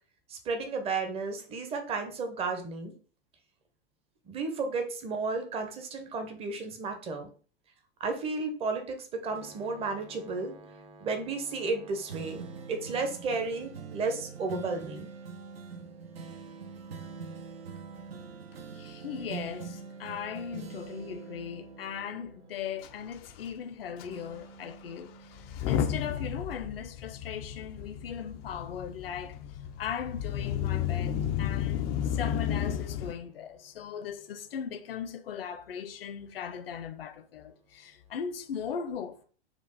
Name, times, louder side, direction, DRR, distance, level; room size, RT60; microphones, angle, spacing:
voice 1, 0.3-2.9 4.3-7.3 8.0-15.1, right 4 dB, 20° right, 0.7 m, -33 dB
sound 1, 12.1-23.7 24.1-26.0 26.5-26.6, right 5 dB, 70° right, 0.7 m, -44 dB
voice 2, 18.7-29.4 29.8-39.2, left 7 dB, 65° left, 0.6 m, -38 dB
Motor vehicle (road) / Engine starting / Accelerating revving vroom, 22.8-22.9 23.1-23.4 24.0-24.1 25.4-33.1, left 9 dB, 25° left, 0.3 m, -32 dB
4.4 x 2.4 x 3.8 m
figure-of-eight pair, 100°, 31 cm